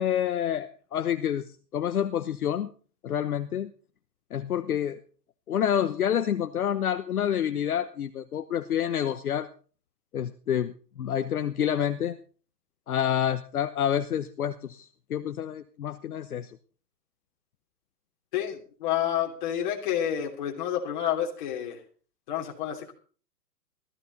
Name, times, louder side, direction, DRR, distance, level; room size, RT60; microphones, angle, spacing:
voice 1, 0.0-2.7 3.0-3.7 4.3-5.0 5.5-9.5 10.1-12.2 12.9-16.6, left 9 dB, 60° left, 9 dB, 1.1 m, -28 dB
voice 2, 18.3-21.8 22.3-22.9, left 10 dB, 30° left, 2 dB, 3.0 m, -29 dB
16.0 x 14.5 x 4.1 m, 0.40 s
hypercardioid pair, 170°, 49 cm